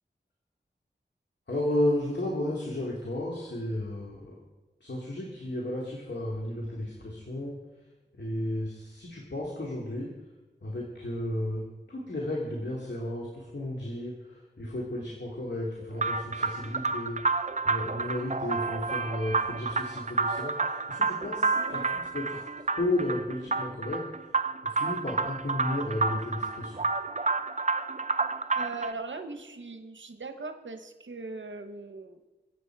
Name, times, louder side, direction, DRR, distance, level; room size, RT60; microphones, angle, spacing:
voice 1, 1.5-4.4 4.8-7.6 8.2-10.1 10.6-24.1 24.6-26.7, left 1 dB, 70° left, -3 dB, 2.5 m, -33 dB
sound 1, 16.0-28.9, right 4 dB, 40° right, 0.6 m, -30 dB
voice 2, 21.5-21.9 28.5-32.2, right 3 dB, 90° right, 7 dB, 0.9 m, -40 dB
23.5 x 8.2 x 4.7 m, 1.1 s
wide cardioid pair, 50°, 19 cm